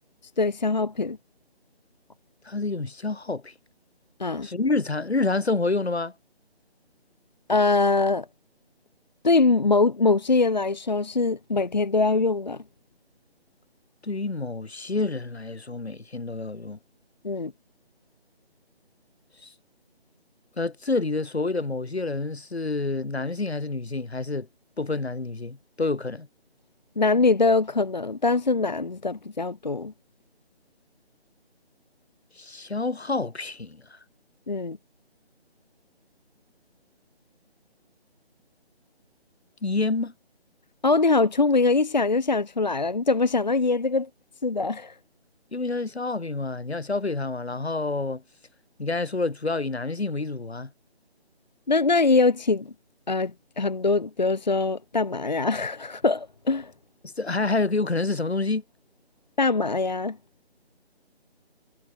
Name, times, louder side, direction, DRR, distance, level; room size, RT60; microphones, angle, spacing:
voice 1, 0.4-1.2 4.2-4.5 7.5-8.3 9.2-12.6 17.2-17.5 27.0-29.9 34.5-34.8 40.8-44.1 44.4-45.0 51.7-52.7 53.1-56.7 59.4-60.2, left 3 dB, 45° left, 0.8 m, -23 dB
voice 2, 2.4-3.5 4.4-6.1 14.0-16.8 19.4-19.5 20.6-24.5 24.8-26.3 32.4-34.0 39.6-40.1 45.5-48.2 48.8-50.7 57.0-58.6, left 3 dB, 75° left, 7.1 m, -28 dB
figure-of-eight pair, 175°, 32 cm